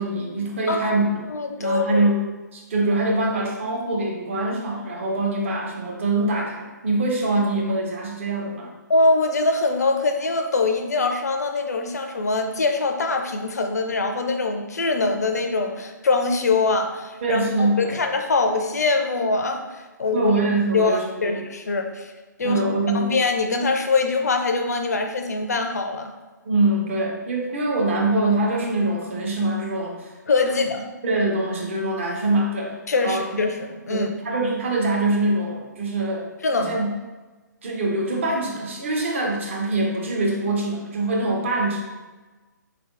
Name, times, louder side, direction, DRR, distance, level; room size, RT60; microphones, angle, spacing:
voice 1, 0.0-1.3 1.6-8.7 17.2-18.0 20.1-21.4 22.4-23.2 26.4-30.1 31.0-33.3 33.9-36.3 36.6-36.9 37.6-41.8, right 2 dB, 40° right, 0 dB, 0.7 m, -24 dB
voice 2, 0.7-1.0 1.3-2.1 8.9-20.4 20.7-22.1 22.4-22.6 22.9-26.1 30.3-30.9 32.9-34.1 36.4-36.8, left 3 dB, 55° left, 5 dB, 0.4 m, -23 dB
3.6 x 3.4 x 2.4 m, 1.2 s
figure-of-eight pair, 135°, 10 cm